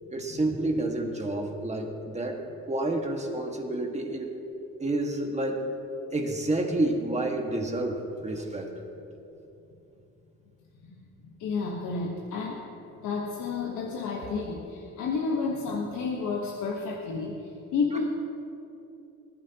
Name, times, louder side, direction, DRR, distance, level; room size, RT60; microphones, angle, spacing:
voice 1, 0.1-4.3 4.8-5.6 6.1-8.7, right 2 dB, 20° right, 1 dB, 1.8 m, -29 dB
voice 2, 10.8-12.6 13.0-18.0, left 4 dB, 80° left, -2 dB, 1.4 m, -31 dB
20.0 x 10.5 x 3.0 m, 2.9 s
cardioid pair, 90°, 30 cm